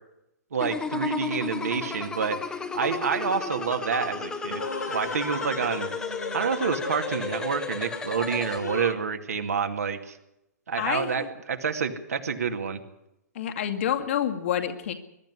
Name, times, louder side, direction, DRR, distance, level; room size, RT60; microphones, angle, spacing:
voice 1, 0.5-4.6 4.9-5.9 6.3-10.2 10.7-12.8, right 6 dB, 60° right, 6 dB, 2.3 m, -28 dB
sound 1, 0.6-8.6, left 4 dB, 10° left, 1.2 m, -34 dB
sound 2, 1.2-8.9, left 3 dB, 75° left, 1.8 m, -38 dB
voice 2, 10.8-11.3 13.4-14.9, left 10 dB, 45° left, 5 dB, 2.1 m, -28 dB
22.0 x 12.5 x 9.8 m, 0.86 s
figure-of-eight pair, 115°, 9 cm